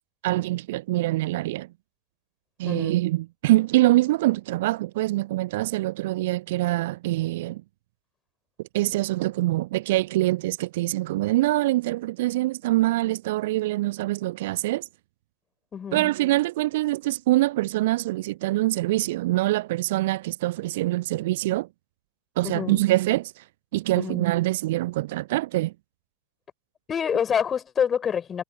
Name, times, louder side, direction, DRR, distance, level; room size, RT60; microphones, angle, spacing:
voice 1, 0.2-1.7 2.6-7.6 8.7-14.8 15.9-21.7 22.4-23.4 23.7-25.7, right 17 dB, 55° right, 0.3 m, -24 dB
voice 2, 2.6-3.0 15.7-16.1 22.4-22.9 24.0-24.3 26.9-28.4, left 7 dB, 20° left, 7.3 m, -27 dB
figure-of-eight pair, 90°, 0 cm